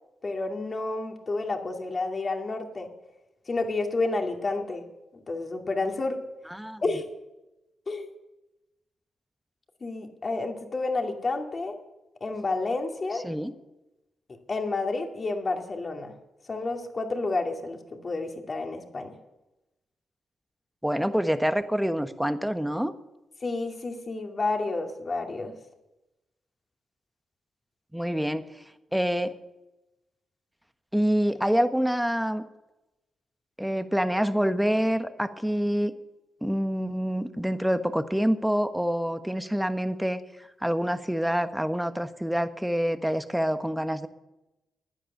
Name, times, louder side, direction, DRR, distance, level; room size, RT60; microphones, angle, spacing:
voice 1, 0.2-2.9 3.5-4.9 5.1-6.2 6.8-7.1 7.9-8.1 9.8-11.8 12.2-13.2 14.5-16.1 16.4-19.1 23.4-25.6, left 3 dB, 45° left, 3 dB, 2.4 m, -30 dB
voice 2, 6.5-6.8 13.2-13.5 20.8-22.9 27.9-29.3 30.9-32.4 33.6-35.9 36.4-44.1, equal, 5° right, 9 dB, 1.2 m, -26 dB
15.5 x 10.0 x 6.7 m, 0.98 s
supercardioid pair, 50°, 0 cm